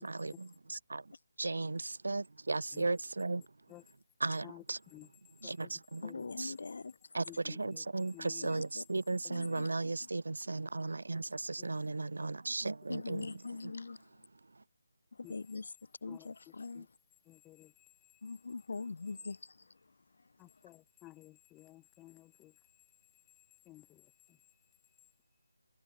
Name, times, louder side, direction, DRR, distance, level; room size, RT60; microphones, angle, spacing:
voice 1, 0.0-1.0 1.4-3.4 4.2-4.8 5.4-6.1 6.4-6.5 7.1-13.7 14.6-14.7, right 3 dB, 75° right, 3.6 m, -36 dB
voice 2, 6.0-6.9 8.4-8.8 9.3-9.7 12.9-14.0 15.3-15.7 16.0-16.9 18.2-19.4, left 4 dB, 55° left, 7.3 m, -42 dB
voice 3, 7.3-7.8 8.1-8.5 15.2-15.3 16.1-16.3 16.8-16.9 17.3-17.7 20.4-22.5 23.7-24.0, left 18 dB, 10° left, 2.1 m, -54 dB
figure-of-eight pair, 170°, 0 cm